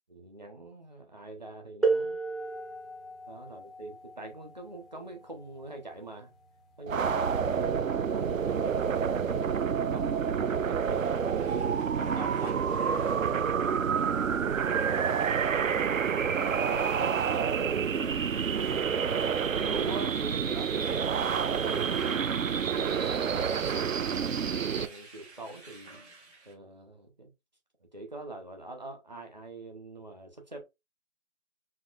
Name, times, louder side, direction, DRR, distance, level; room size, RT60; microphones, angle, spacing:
voice 1, 0.1-2.2 3.3-6.3 6.8-9.4 9.9-13.8 14.2-15.1 15.6-18.2 18.6-21.9 22.7-26.0 26.4-27.3 27.8-30.6, right 2 dB, 30° right, 0.9 m, -44 dB
sound 1, 1.8-7.3 8.3-8.4 9.2-9.4, right 3 dB, ahead, 0.4 m, -34 dB
sound 2, 6.9-24.9, right 7 dB, 70° right, 0.6 m, -28 dB
sound 3, 11.1-26.5, right 3 dB, 55° right, 1.8 m, -54 dB
6.0 x 2.6 x 2.5 m
figure-of-eight pair, 165°, 41 cm